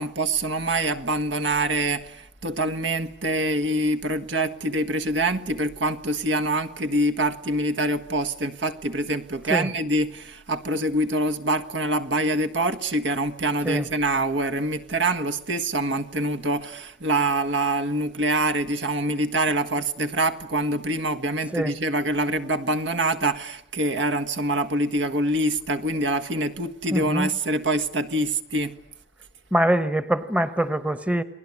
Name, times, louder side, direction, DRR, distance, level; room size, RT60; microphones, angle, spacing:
voice 1, 0.0-28.8, right 1 dB, 75° right, 1.7 m, -25 dB
voice 2, 26.9-27.3 29.5-31.2, right 1 dB, 5° right, 1.0 m, -23 dB
29.5 x 20.5 x 9.8 m
head